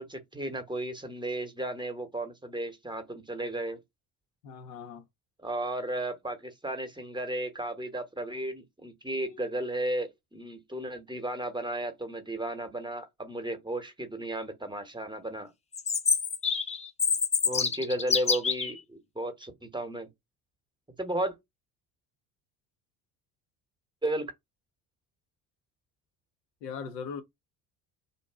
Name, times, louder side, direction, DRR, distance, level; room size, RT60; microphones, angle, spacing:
voice 1, 0.0-3.8 5.4-15.5 17.4-20.1 21.0-21.3 24.0-24.3, right 1 dB, 10° right, 0.9 m, -34 dB
voice 2, 4.4-5.0 9.1-9.6 26.6-27.2, left 6 dB, 85° left, 0.7 m, -40 dB
Chirp tweet, 15.7-18.7, left 5 dB, 15° left, 0.3 m, -27 dB
2.6 x 2.2 x 3.3 m
hypercardioid pair, 65°, 47 cm